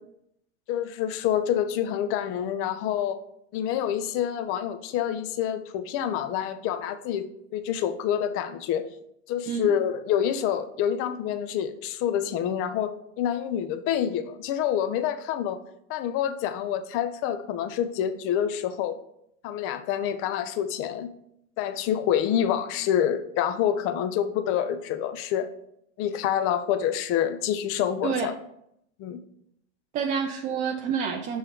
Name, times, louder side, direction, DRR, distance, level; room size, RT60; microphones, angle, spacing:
voice 1, 0.7-3.2 3.5-7.2 7.5-8.8 9.3-15.6 15.9-19.0 19.4-21.1 21.6-25.5 26.0-28.3 29.0-29.2, left 10 dB, 40° left, 10 dB, 0.5 m, -27 dB
voice 2, 29.9-31.4, right 7 dB, 25° right, 2 dB, 0.3 m, -28 dB
6.2 x 3.1 x 4.8 m, 0.75 s
supercardioid pair, 125°, 36 cm